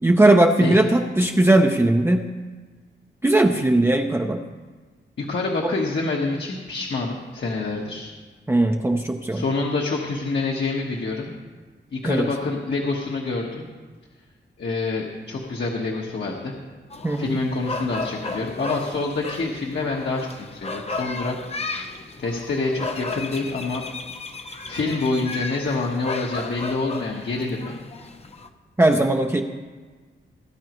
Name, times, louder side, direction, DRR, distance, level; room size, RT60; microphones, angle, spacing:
voice 1, 0.0-2.3 3.2-4.4 5.6-5.7 8.5-9.4 12.0-12.3 17.0-17.4 28.8-29.4, right 1 dB, 10° right, 3 dB, 0.6 m, -18 dB
voice 2, 5.2-8.1 9.3-11.3 11.9-13.6 14.6-16.5 17.2-23.8 24.4-27.7, left 3 dB, 65° left, -2 dB, 1.3 m, -27 dB
sound 1, 16.9-28.5, left 3 dB, 30° left, 0.7 m, -34 dB
18.5 x 10.5 x 3.1 m, 1.4 s
wide cardioid pair, 110°, 20 cm